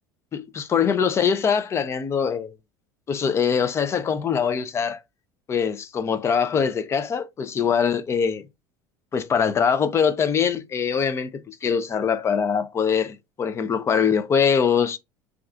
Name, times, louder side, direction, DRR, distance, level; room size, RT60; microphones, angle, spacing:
voice 1, 0.3-2.5 3.1-5.0 5.5-8.4 9.1-15.0, left 7 dB, 25° left, 0.4 m, -23 dB
2.3 x 2.3 x 3.6 m
supercardioid pair, 120°, 10 cm